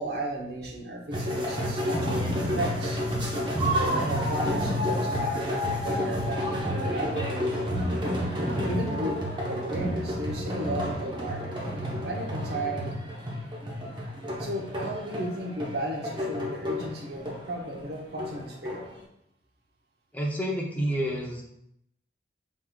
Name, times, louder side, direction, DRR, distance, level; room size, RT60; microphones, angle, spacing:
voice 1, 0.0-3.0 3.7-7.8 8.4-11.6 12.0-12.9 14.4-18.8, right 1 dB, 60° right, 0 dB, 0.8 m, -34 dB
sound 1, 1.1-19.0, equal, 25° right, 0.9 m, -30 dB
voice 2, 20.1-21.4, equal, 10° left, -2 dB, 0.6 m, -29 dB
6.2 x 3.6 x 2.3 m, 0.77 s
head